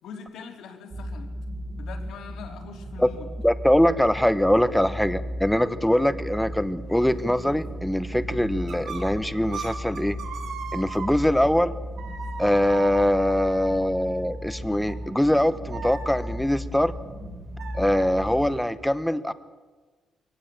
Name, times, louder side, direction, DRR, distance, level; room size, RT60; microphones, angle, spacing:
voice 1, 0.0-1.3 1.8-3.3 5.0-5.2, left 6 dB, 85° left, 2 dB, 3.7 m, -42 dB
sound 1, 0.9-18.6, equal, 20° right, 1.9 m, -36 dB
voice 2, 3.4-10.2 10.7-11.7 12.4-16.9 17.7-19.3, left 1 dB, 5° left, 13 dB, 0.9 m, -23 dB
sound 2, 6.4-11.5 12.0-18.1, right 5 dB, 65° right, 5.5 m, -41 dB
23.5 x 16.5 x 8.7 m, 1.3 s
cardioid pair, 155°, 0 cm